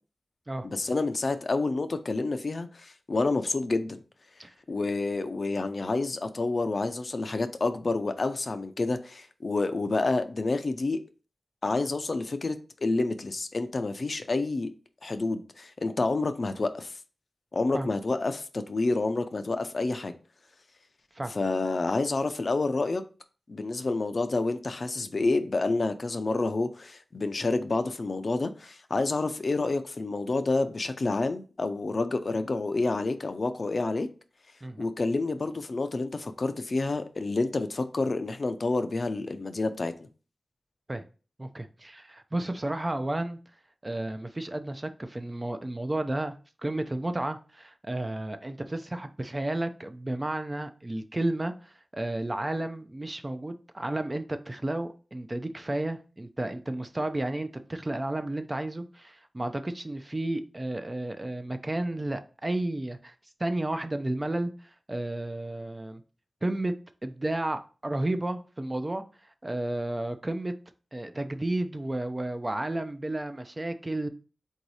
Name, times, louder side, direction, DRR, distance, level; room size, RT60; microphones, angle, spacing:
voice 1, 0.6-4.0 4.7-11.0 11.6-14.7 15.0-17.0 17.5-20.1 21.3-23.0 23.5-34.1 34.8-40.1, left 3 dB, 55° left, 0.5 m, -29 dB
voice 2, 41.4-43.4 43.8-46.3 46.6-63.1 63.4-64.5 64.9-66.0 66.4-66.7 67.0-69.0 69.4-70.5 70.9-74.1, right 1 dB, 25° right, 0.4 m, -32 dB
3.9 x 2.7 x 4.7 m
wide cardioid pair, 70°, 0 cm